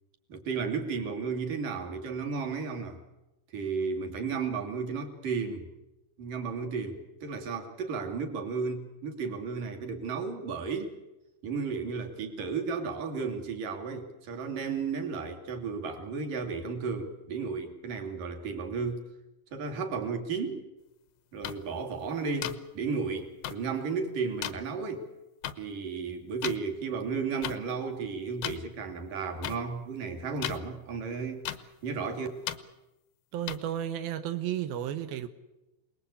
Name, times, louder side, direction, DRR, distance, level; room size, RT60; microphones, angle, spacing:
voice 1, 0.3-3.0 3.5-5.7 6.2-10.9 11.4-19.0 19.5-20.7 21.3-25.1 25.6-31.5 31.8-32.3, right 5 dB, 50° right, 3.7 m, -33 dB
sound 1, 21.4-21.5 22.4-22.5 23.4-23.5 24.4-24.5 25.4-25.5 26.4-26.6 27.4-27.6 28.4-28.6 29.4-29.6 30.4-30.6 31.4-31.6 32.5-32.6 33.5-33.6, left 13 dB, 80° left, 2.2 m, -33 dB
voice 2, 33.3-35.3, right 11 dB, 80° right, 2.1 m, -33 dB
28.0 x 20.0 x 8.4 m
omnidirectional pair, 5.7 m